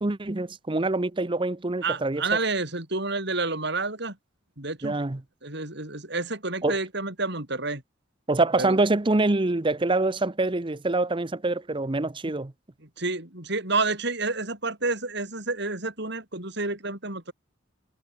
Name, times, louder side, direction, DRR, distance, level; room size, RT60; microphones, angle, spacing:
voice 1, 0.0-2.2 4.8-5.2 6.6-6.8 8.3-12.5, right 2 dB, 25° right, 0.8 m, -25 dB
voice 2, 1.8-4.1 4.6-5.0 5.4-7.8 8.6-8.7 12.3-12.4 13.0-17.3, right 3 dB, 60° right, 6.7 m, -29 dB
head